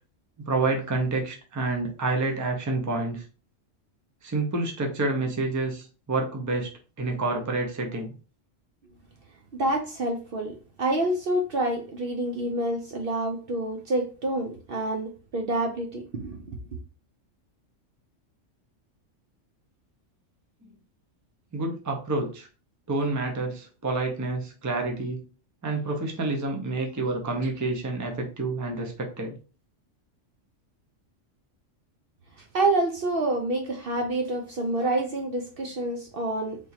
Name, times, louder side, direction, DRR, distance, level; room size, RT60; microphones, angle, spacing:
voice 1, 0.5-3.2 4.2-6.7 7.0-8.1 21.5-22.5 22.9-25.2 25.6-29.4, right 3 dB, 20° right, 0.5 m, -28 dB
voice 2, 9.5-16.6 32.4-36.6, right 2 dB, 55° right, 0.7 m, -28 dB
3.7 x 2.9 x 2.7 m
omnidirectional pair, 1.3 m